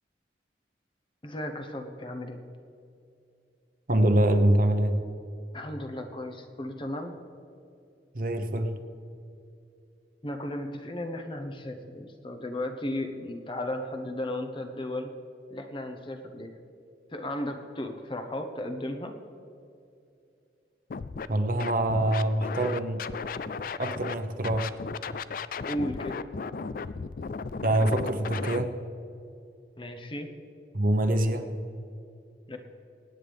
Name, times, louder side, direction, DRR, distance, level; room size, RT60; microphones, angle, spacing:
voice 1, 1.2-2.4 5.5-7.2 10.2-15.1 15.5-16.5 17.1-19.1 25.6-26.2 29.8-30.3 32.5-32.6, left 1 dB, 30° left, 5 dB, 0.9 m, -35 dB
voice 2, 3.9-4.9 8.1-8.8 21.3-23.0 23.8-24.8 27.6-28.7 30.7-31.5, right 1 dB, 50° right, 6 dB, 1.0 m, -24 dB
Scratching (performance technique), 20.9-21.3 21.6-24.1 24.4-28.6, left 5 dB, 50° left, 0.4 m, -35 dB
24.5 x 9.5 x 3.5 m, 2.6 s
head